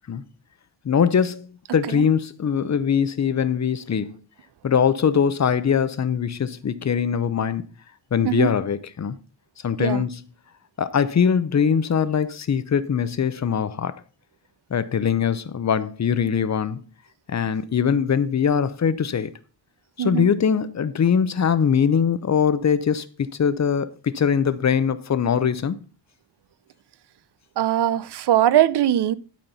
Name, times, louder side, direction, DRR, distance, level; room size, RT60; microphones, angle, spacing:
voice 1, 0.8-1.5 1.7-4.2 4.6-7.6 8.1-9.2 9.6-10.2 10.8-13.9 14.7-16.8 17.3-19.3 20.0-25.8, left 7 dB, 40° left, 0.6 m, -22 dB
voice 2, 20.0-20.3 27.6-29.2, right 11 dB, 65° right, 0.6 m, -21 dB
12.0 x 4.3 x 5.4 m
wide cardioid pair, 135°, 43 cm